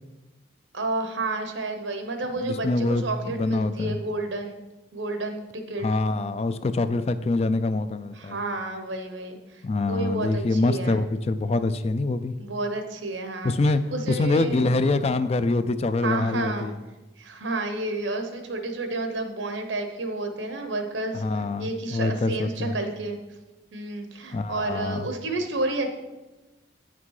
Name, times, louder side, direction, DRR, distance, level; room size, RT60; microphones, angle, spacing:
voice 1, 0.7-4.6 4.9-5.9 8.1-11.0 12.4-13.6 13.9-14.7 16.0-16.7 17.2-23.2 23.7-25.9, right 2 dB, 85° right, 6 dB, 1.1 m, -31 dB
voice 2, 2.4-4.0 5.8-8.4 9.6-12.4 13.4-13.8 14.1-16.7 21.1-22.8 24.3-25.1, left 2 dB, 35° left, 12 dB, 0.3 m, -25 dB
8.6 x 5.9 x 4.8 m, 1.1 s
head